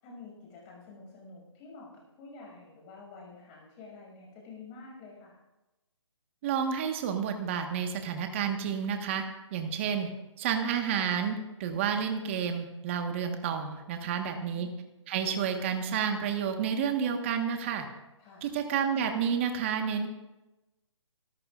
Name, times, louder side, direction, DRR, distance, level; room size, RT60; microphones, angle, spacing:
voice 1, 0.0-5.4 14.0-14.7 18.2-18.5, left 3 dB, 20° left, -2 dB, 5.9 m, -49 dB
voice 2, 6.4-9.2 9.5-10.1 10.4-14.7 15.1-17.8 18.4-20.1, right 7 dB, 25° right, 5 dB, 1.5 m, -30 dB
26.0 x 14.0 x 2.5 m, 1.0 s
hypercardioid pair, 160°, 16 cm